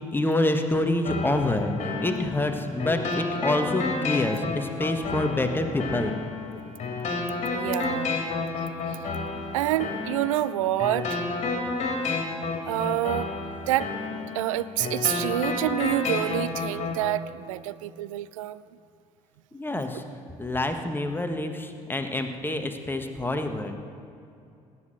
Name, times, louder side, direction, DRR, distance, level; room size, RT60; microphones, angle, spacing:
voice 1, 0.1-6.1 19.5-20.0 20.4-23.7, left 1 dB, 10° left, 6 dB, 1.6 m, -27 dB
sound 1, 1.0-17.0, left 3 dB, 45° left, 3.2 m, -31 dB
voice 2, 7.5-8.2 8.9-9.0 9.5-11.2 12.6-13.3 13.7-13.9 14.3-18.6, right 15 dB, 80° right, 17 dB, 0.4 m, -27 dB
19.0 x 7.9 x 7.9 m, 2.6 s
hypercardioid pair, 55°, 17 cm